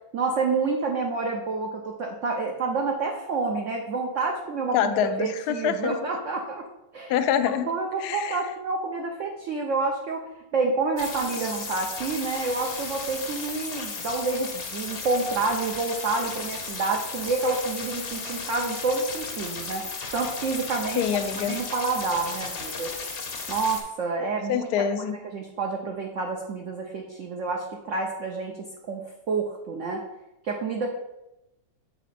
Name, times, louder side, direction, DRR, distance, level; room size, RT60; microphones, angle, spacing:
voice 1, 0.1-6.7 6.9-7.1 7.7-10.2 10.5-19.8 20.1-21.0 21.5-22.9 23.5-24.7 25.2-28.6 28.8-30.0 30.4-30.9, right 3 dB, 65° right, 1 dB, 0.7 m, -28 dB
voice 2, 4.7-5.9 7.1-7.7 8.0-8.4 21.0-21.6 24.5-25.2, left 8 dB, 70° left, 8 dB, 1.0 m, -25 dB
sound 1, 11.0-23.8, left 4 dB, 45° left, 0.8 m, -35 dB
7.3 x 4.0 x 4.2 m, 0.94 s
omnidirectional pair, 2.0 m